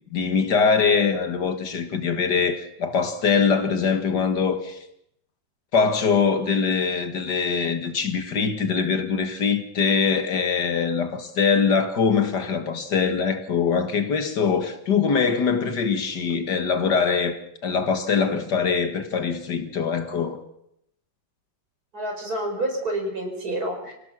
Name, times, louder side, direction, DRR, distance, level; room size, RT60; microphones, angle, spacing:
voice 1, 0.1-4.8 5.7-20.4, left 5 dB, 70° left, 2.3 m, -23 dB
voice 2, 21.9-23.9, right 1 dB, 55° right, 5.7 m, -28 dB
26.5 x 17.0 x 6.2 m
omnidirectional pair, 1.9 m